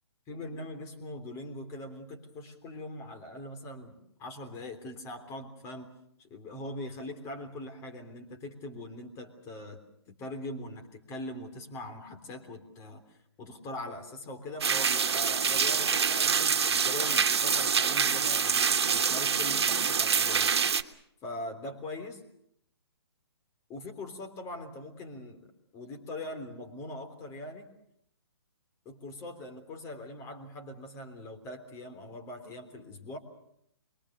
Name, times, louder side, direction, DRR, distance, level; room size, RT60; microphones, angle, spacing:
voice 1, 0.3-5.9 6.2-9.8 10.1-20.5 21.2-22.2 23.7-27.7 28.9-33.2, left 1 dB, 20° left, 6 dB, 3.5 m, -42 dB
sound 1, 14.6-20.8, right 6 dB, 70° right, 1.5 m, -26 dB
26.0 x 23.0 x 6.8 m, 0.73 s
hypercardioid pair, 140°, 14 cm